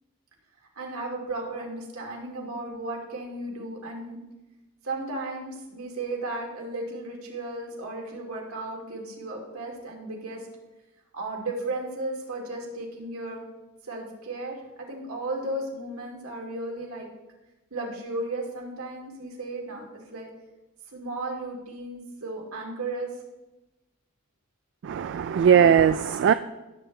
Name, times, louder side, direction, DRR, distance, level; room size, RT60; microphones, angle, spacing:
voice 1, 0.8-4.2 4.8-10.5 11.1-13.4 13.8-17.1 17.7-20.3 20.9-23.1, right 2 dB, 75° right, 2.5 m, -35 dB
voice 2, 24.8-26.3, right 8 dB, 55° right, 0.3 m, -19 dB
17.0 x 8.1 x 3.3 m
head